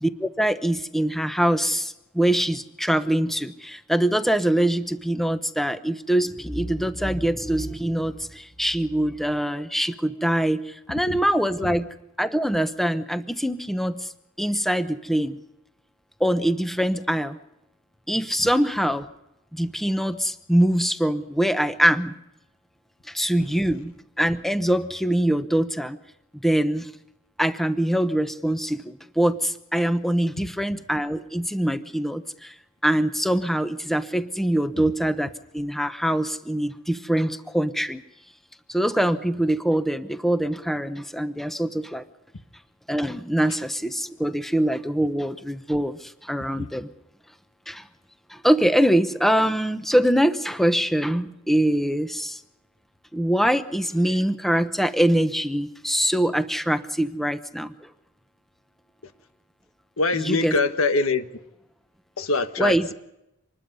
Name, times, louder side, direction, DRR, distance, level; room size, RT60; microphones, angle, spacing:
voice 1, 0.0-14.1 14.4-15.4 16.2-17.4 18.1-19.1 19.5-22.2 23.1-26.0 26.4-26.9 27.4-32.5 32.8-38.0 38.7-42.0 42.9-46.9 47.7-47.9 48.3-52.4 53.1-57.9 60.1-60.5 62.6-62.9, right 1 dB, ahead, 10 dB, 0.8 m, -23 dB
voice 2, 60.0-61.2 62.2-62.9, left 3 dB, 90° left, 9 dB, 1.5 m, -24 dB
26.0 x 20.5 x 5.5 m, 0.87 s
head